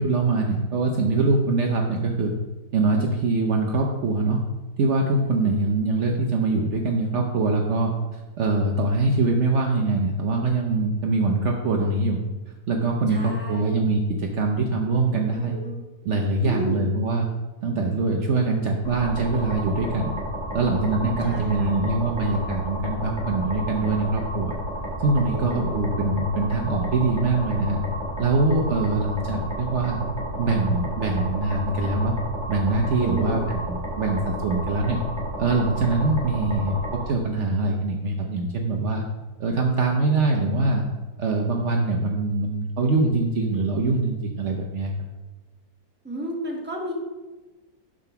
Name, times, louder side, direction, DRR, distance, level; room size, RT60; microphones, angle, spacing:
voice 1, 0.0-2.3 2.7-4.4 4.8-12.2 12.5-15.6 16.0-17.3 17.6-20.2 20.5-24.6 25.0-27.8 28.2-30.0 30.4-32.1 32.5-35.0 35.4-39.0 39.4-40.8 41.2-44.9, right 3 dB, 80° right, 1 dB, 0.6 m, -23 dB
voice 2, 5.1-5.6 13.1-13.8 15.3-15.8 16.4-16.8 21.2-21.8 25.3-25.8 33.0-33.4 46.0-46.9, equal, 5° right, -1 dB, 0.9 m, -33 dB
sound 1, 18.8-37.0, right 1 dB, 15° left, 1.7 m, -32 dB
7.2 x 3.9 x 5.7 m, 1.2 s
omnidirectional pair, 2.0 m